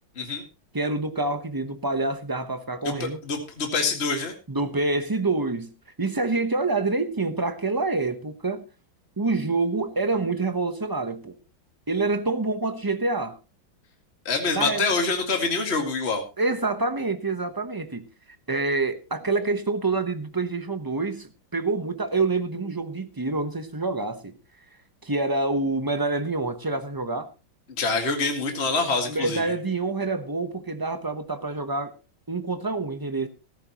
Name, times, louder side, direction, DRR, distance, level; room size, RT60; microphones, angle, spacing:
voice 1, 0.7-3.2 4.5-5.7 6.0-8.6 9.2-11.3 11.9-13.4 14.5-14.8 16.4-18.1 18.5-24.3 25.0-27.3 29.1-31.9 32.3-33.3, right 3 dB, 20° right, 0.5 m, -27 dB
voice 2, 2.8-4.3 14.3-16.2 27.8-29.4, left 4 dB, 30° left, 2.3 m, -26 dB
15.5 x 13.5 x 3.0 m
omnidirectional pair, 2.1 m